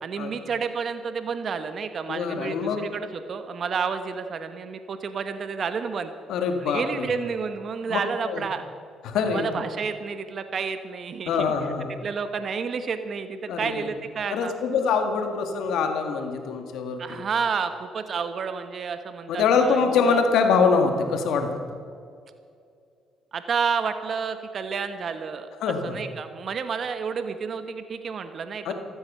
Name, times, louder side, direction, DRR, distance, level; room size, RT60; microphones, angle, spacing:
voice 1, 0.0-6.1 6.6-8.6 9.2-11.5 12.0-14.5 17.0-20.2 23.3-28.7, right 6 dB, 55° right, 9 dB, 1.1 m, -30 dB
voice 2, 2.1-2.8 6.3-7.1 7.9-8.0 8.3-8.4 9.0-9.6 11.3-11.9 13.5-13.9 14.3-17.2 19.3-21.5 25.6-26.0 28.6-28.7, left 5 dB, 75° left, 5 dB, 1.9 m, -24 dB
15.0 x 13.5 x 5.7 m, 2.3 s
supercardioid pair, 55°, 0 cm